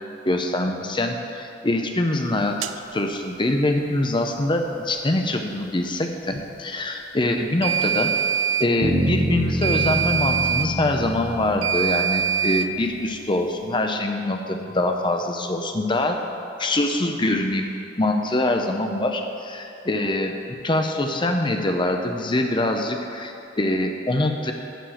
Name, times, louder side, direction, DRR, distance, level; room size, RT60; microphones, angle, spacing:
voice 1, 0.2-2.6 2.9-8.1 8.6-16.2 16.6-17.7 18.0-20.3 20.6-24.5, left 1 dB, 25° left, 4 dB, 0.7 m, -24 dB
sound 1, 2.6-2.8 7.6-8.7 9.6-10.7 11.6-12.7, right 8 dB, 75° right, 0.4 m, -23 dB
sound 2, 8.8-12.8, equal, 30° right, 0.8 m, -27 dB
11.5 x 4.4 x 7.8 m, 2.7 s
head